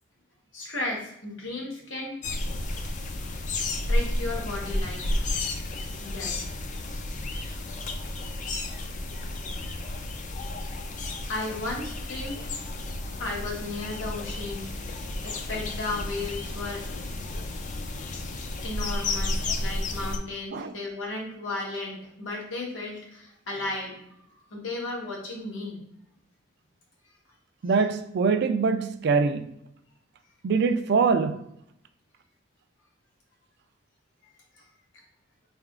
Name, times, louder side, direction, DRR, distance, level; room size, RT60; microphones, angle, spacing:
voice 1, 0.5-2.2 3.9-5.1 6.0-6.4 11.3-12.5 13.2-16.8 18.6-24.1 24.5-25.8, left 2 dB, 75° left, 1.2 m, -34 dB
sound 1, 2.2-20.2, left 2 dB, 40° left, 0.4 m, -32 dB
voice 2, 27.6-29.5 30.4-31.4, right 5 dB, 60° right, 0.4 m, -23 dB
4.4 x 3.4 x 2.4 m
head